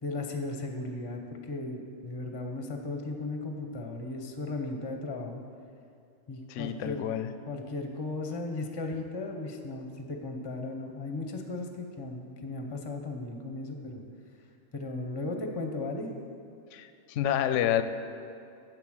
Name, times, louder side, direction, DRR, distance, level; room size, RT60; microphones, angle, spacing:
voice 1, 0.0-5.4 6.3-7.0 7.5-14.0 14.7-16.1, left 2 dB, 25° left, 3 dB, 0.6 m, -36 dB
voice 2, 6.5-7.3 16.7-17.8, left 11 dB, 70° left, 10 dB, 0.8 m, -28 dB
8.2 x 7.4 x 6.3 m, 2.5 s
omnidirectional pair, 1.5 m